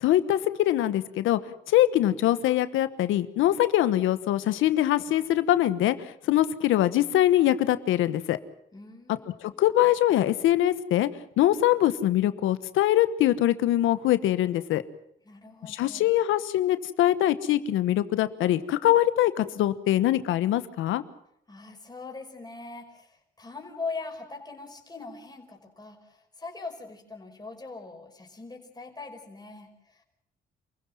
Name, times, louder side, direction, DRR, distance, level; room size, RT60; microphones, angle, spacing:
voice 1, 0.0-8.4 9.4-11.1 11.4-14.8 15.7-21.0, left 13 dB, 90° left, 14 dB, 1.2 m, -23 dB
voice 2, 8.7-9.6 15.2-16.2 21.5-30.0, left 4 dB, 20° left, 2 dB, 5.2 m, -41 dB
28.0 x 15.5 x 7.5 m, 0.73 s
cardioid pair, 90°, 20 cm